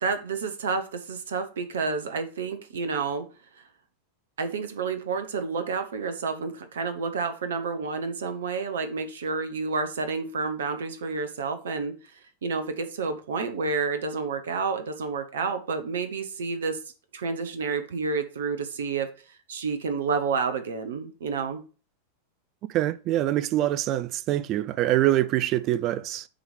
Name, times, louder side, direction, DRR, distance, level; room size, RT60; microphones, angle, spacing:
voice 1, 0.0-3.3 3.6-3.7 4.4-11.9 12.4-16.8 17.1-19.1 19.5-21.6, right 4 dB, 65° right, 0.9 m, -29 dB
voice 2, 22.7-26.3, right 14 dB, 35° right, 0.4 m, -24 dB
8.7 x 3.1 x 5.2 m
figure-of-eight pair, 90°, 0 cm